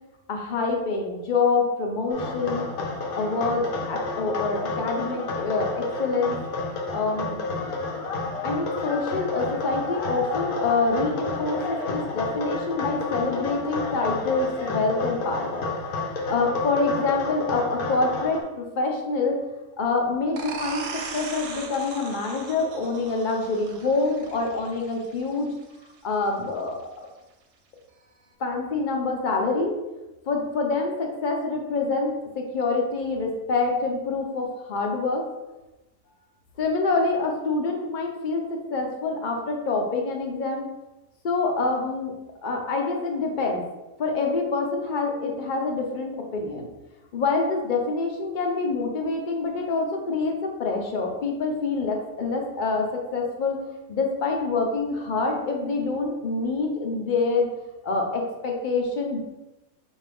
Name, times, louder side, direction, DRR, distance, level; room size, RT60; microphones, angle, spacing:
voice 1, 0.3-2.7 3.2-6.4 6.9-7.4 8.4-15.7 16.3-19.4 19.8-25.5 26.0-27.1 28.4-29.8 30.3-35.2 36.6-40.7 41.2-42.1 42.4-43.6 44.0-46.7 47.1-53.6 53.9-57.5 57.8-59.2, left 3 dB, 50° left, 2 dB, 0.6 m, -26 dB
sound 1, 2.1-18.4, left 3 dB, 80° left, 1.2 m, -30 dB
sound 2, 20.4-25.8, right 5 dB, 60° right, 0.8 m, -38 dB
5.7 x 2.6 x 3.4 m, 1.0 s
omnidirectional pair, 1.5 m